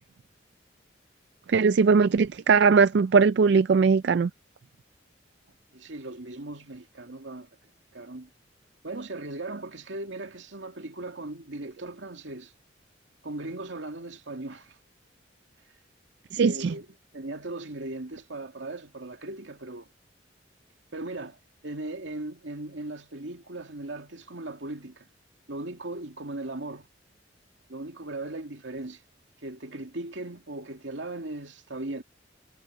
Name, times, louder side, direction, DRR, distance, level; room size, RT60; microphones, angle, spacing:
voice 1, 1.5-4.3 16.3-16.7, right 5 dB, 65° right, 0.4 m, -20 dB
voice 2, 5.7-7.5 7.9-8.3 8.8-12.5 13.2-14.8 16.4-16.9 17.1-19.9 20.9-25.1 25.5-26.9 27.7-29.0 29.4-32.0, right 2 dB, 80° right, 2.2 m, -38 dB
head